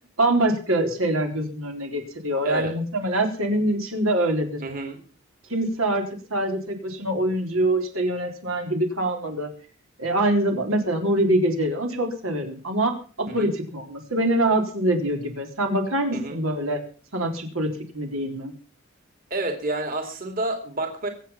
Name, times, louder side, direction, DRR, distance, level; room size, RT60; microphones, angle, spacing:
voice 1, 0.2-4.6 5.5-9.5 10.0-16.8 17.1-18.5, right 1 dB, 85° right, 3 dB, 4.0 m, -24 dB
voice 2, 4.6-5.0 13.3-13.5 16.1-16.4 19.3-21.1, right 2 dB, 45° right, 5 dB, 2.7 m, -29 dB
23.5 x 8.3 x 5.8 m, 0.40 s
head